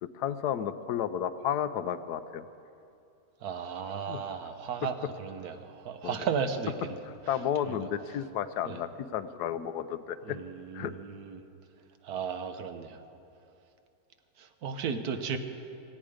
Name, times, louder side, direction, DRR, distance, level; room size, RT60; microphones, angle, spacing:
voice 1, 0.0-2.5 4.1-4.2 6.0-6.3 7.3-10.4 10.7-10.9, left 9 dB, 85° left, 13 dB, 1.2 m, -32 dB
voice 2, 3.4-6.7 7.6-7.8 8.6-8.8 10.2-11.4 12.0-13.0 14.4-15.4, right 6 dB, 75° right, 8 dB, 1.4 m, -35 dB
17.5 x 15.5 x 5.0 m, 2.6 s
omnidirectional pair, 1.6 m